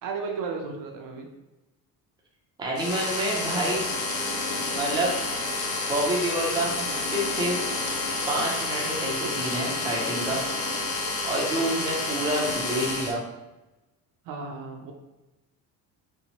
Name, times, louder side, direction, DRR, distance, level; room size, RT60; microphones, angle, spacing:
voice 1, 0.0-1.3 14.3-14.9, right 4 dB, 60° right, 2 dB, 0.5 m, -34 dB
voice 2, 2.6-3.9 4.7-5.1 5.9-7.6 8.3-10.4 11.3-13.2, right 1 dB, 10° right, -3 dB, 0.5 m, -28 dB
sound 1, 2.8-13.1, left 3 dB, 50° left, 0.5 m, -29 dB
2.8 x 2.1 x 2.8 m, 1.0 s
cardioid pair, 130°, 38 cm